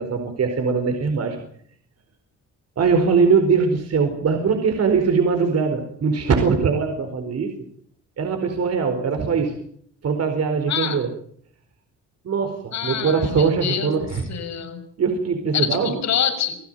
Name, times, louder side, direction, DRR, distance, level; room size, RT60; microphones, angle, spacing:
voice 1, 0.0-1.4 2.8-7.6 8.2-9.6 10.0-11.1 12.2-14.2 15.0-15.9, right 5 dB, 55° right, 6 dB, 4.7 m, -21 dB
voice 2, 10.7-11.0 12.7-14.8 15.5-16.6, left 8 dB, 65° left, 8 dB, 6.2 m, -26 dB
27.5 x 16.0 x 9.2 m, 0.65 s
cardioid pair, 90°, 30 cm